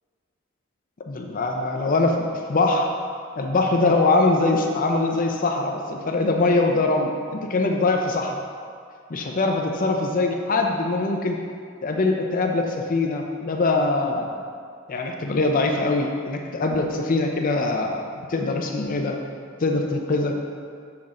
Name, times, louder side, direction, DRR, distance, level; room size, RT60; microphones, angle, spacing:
voice 1, 1.1-2.1 2.5-2.9 3.4-8.4 9.1-11.4 11.8-14.4 14.9-19.1 19.6-20.3, left 2 dB, 45° left, 2 dB, 0.6 m, -22 dB
7.2 x 5.9 x 3.8 m, 2.2 s
head